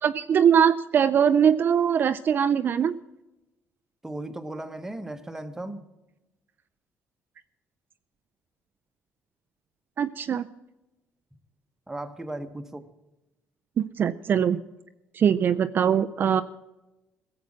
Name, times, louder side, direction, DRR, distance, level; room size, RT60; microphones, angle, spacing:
voice 1, 0.0-2.9 10.0-10.5 13.8-14.6 15.1-16.4, right 8 dB, 45° right, 10 dB, 0.4 m, -22 dB
voice 2, 4.0-5.9 11.9-12.9, right 1 dB, 10° right, 7 dB, 1.1 m, -36 dB
17.0 x 7.7 x 7.3 m, 1.0 s
cardioid pair, 125°, 5 cm